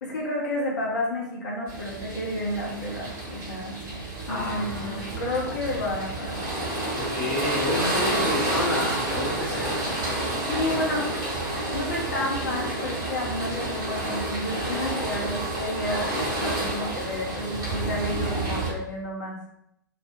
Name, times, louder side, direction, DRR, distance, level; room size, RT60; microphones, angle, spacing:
voice 1, 0.0-3.8 4.3-6.4 10.5-11.3 11.7-19.4, left 1 dB, 60° left, -3 dB, 0.6 m, -31 dB
sound 1, 1.7-18.7, right 1 dB, 25° right, 0.9 m, -29 dB
voice 2, 4.3-5.2 7.0-9.7, left 1 dB, 20° left, -6 dB, 0.9 m, -30 dB
2.3 x 2.0 x 2.7 m, 0.75 s
figure-of-eight pair, 100°, 11 cm